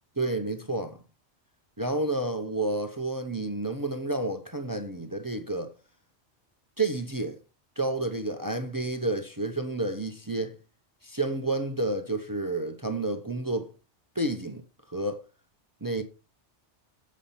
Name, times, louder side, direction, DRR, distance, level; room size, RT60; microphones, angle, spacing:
voice 1, 0.2-1.0 1.8-5.7 6.8-7.4 7.8-10.6 11.0-13.7 14.1-14.6 14.9-15.2 15.8-16.0, right 2 dB, 20° right, 0.8 m, -30 dB
7.5 x 5.6 x 7.0 m
omnidirectional pair, 1.2 m